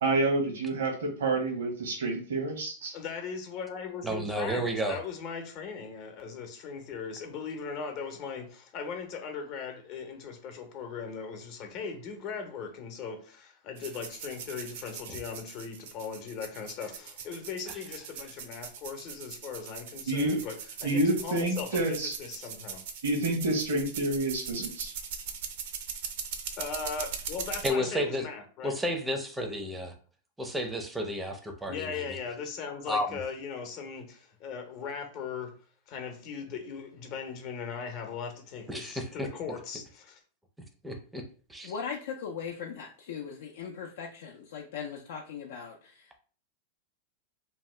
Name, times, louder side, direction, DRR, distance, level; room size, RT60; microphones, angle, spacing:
voice 1, 0.0-3.0 20.1-20.4 20.8-22.1 23.0-24.9, right 2 dB, 90° right, 0.9 m, -28 dB
voice 2, 2.9-22.8 26.6-28.7 31.7-35.5 35.9-40.2, left 5 dB, 45° left, 0.7 m, -39 dB
voice 3, 4.0-5.0 27.6-28.3 28.6-29.9 30.4-32.2 32.9-33.2 38.7-39.3 40.8-41.2 41.5-41.7, equal, 5° right, 0.5 m, -32 dB
sound 1, 13.8-27.7, right 7 dB, 65° right, 0.5 m, -41 dB
voice 4, 41.6-46.2, left 6 dB, 75° left, 0.4 m, -39 dB
2.7 x 2.1 x 3.2 m
supercardioid pair, 140°, 0 cm